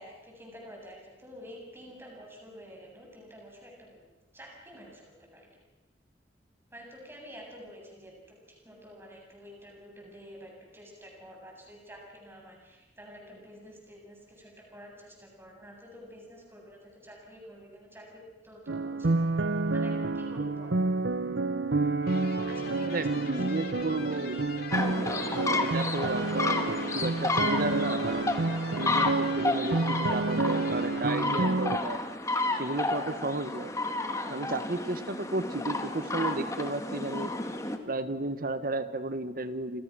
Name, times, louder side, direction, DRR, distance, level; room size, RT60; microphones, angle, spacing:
voice 1, 0.0-4.0 4.3-5.6 6.7-20.8 22.5-23.5, equal, 15° right, -1 dB, 7.9 m, -49 dB
sound 1, 18.7-31.8, right 3 dB, 75° right, 0.8 m, -29 dB
sound 2, 22.0-32.0, left 3 dB, 60° left, 3.2 m, -43 dB
voice 2, 22.8-24.4 25.2-28.4 28.8-32.0 32.5-33.7 34.2-37.3 37.9-39.8, right 2 dB, 55° right, 11 dB, 1.4 m, -33 dB
sound 3, 24.7-37.8, left 2 dB, 20° left, 2.0 m, -32 dB
28.5 x 27.5 x 6.3 m, 1.1 s
head